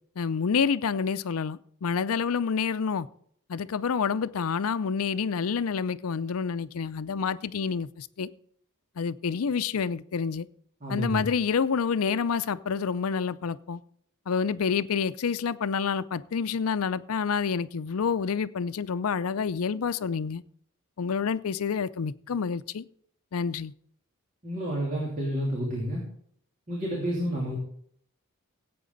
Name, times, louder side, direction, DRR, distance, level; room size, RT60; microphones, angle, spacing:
voice 1, 0.2-3.1 3.5-8.3 9.0-10.5 10.9-13.8 14.3-20.4 21.0-22.8 23.3-23.7, left 6 dB, 80° left, 0.5 m, -28 dB
voice 2, 10.8-11.2 24.4-26.0 26.7-27.6, equal, 35° right, 3.0 m, -30 dB
16.0 x 8.6 x 4.0 m
head